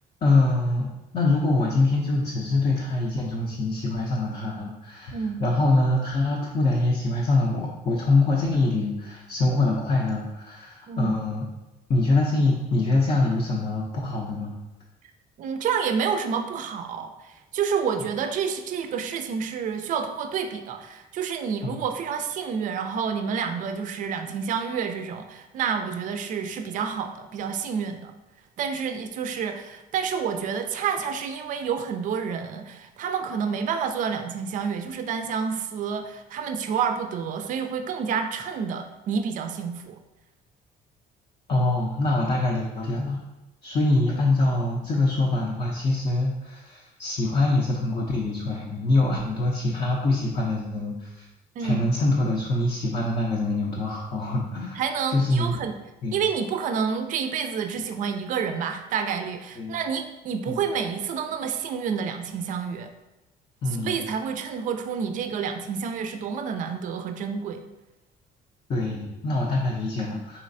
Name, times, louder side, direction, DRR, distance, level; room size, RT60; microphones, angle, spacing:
voice 1, 0.2-0.9 1.1-11.5 11.9-14.5 21.6-21.8 41.5-43.2 43.6-51.3 51.6-54.8 55.1-55.6 56.0-56.2 59.6-59.7 60.5-60.6 63.6-64.0 68.7-70.4, left 2 dB, 40° left, -3 dB, 0.6 m, -24 dB
voice 2, 5.1-5.4 10.9-11.2 15.4-28.1 28.6-40.0 51.6-51.9 54.7-55.7 56.1-62.9 63.7-67.6, right 6 dB, 50° right, 7 dB, 0.4 m, -29 dB
4.0 x 3.1 x 2.6 m, 1.0 s
cardioid pair, 110°, 17 cm